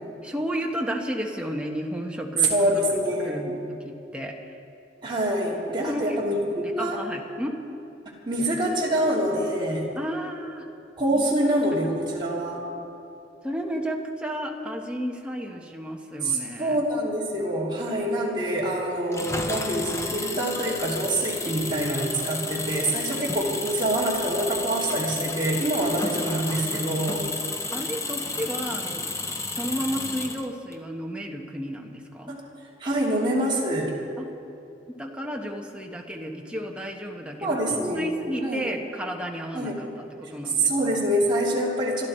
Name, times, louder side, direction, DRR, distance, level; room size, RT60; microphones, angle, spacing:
voice 1, 0.2-2.8 3.2-4.6 5.8-6.2 6.5-7.5 10.0-10.7 11.1-11.3 13.4-16.8 27.7-29.0 29.5-32.3 34.2-34.3 34.9-40.7, equal, 5° right, 1 dB, 1.2 m, -32 dB
voice 2, 2.5-3.4 5.0-7.0 8.3-9.9 11.0-12.6 16.2-27.3 32.3-32.4 32.8-33.9 37.4-38.0 38.4-38.6 39.5-39.8 40.6-42.1, right 1 dB, 25° right, -5 dB, 2.9 m, -25 dB
Engine, 19.1-30.8, left 3 dB, 15° left, 0.7 m, -32 dB
26.5 x 11.5 x 4.4 m, 2.8 s
head